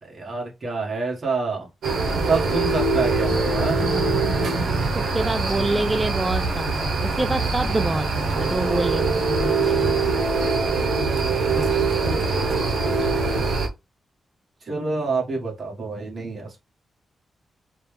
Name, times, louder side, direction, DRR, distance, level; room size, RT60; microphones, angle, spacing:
voice 1, 0.0-1.7 2.3-3.8 14.7-16.6, right 4 dB, 45° right, 1.9 m, -27 dB
sound 1, 1.8-13.7, right 3 dB, 80° right, 1.0 m, -23 dB
voice 2, 4.9-10.1 11.2-13.5, right 2 dB, 20° right, 0.3 m, -28 dB
4.3 x 2.4 x 3.5 m
cardioid pair, 75°, 0 cm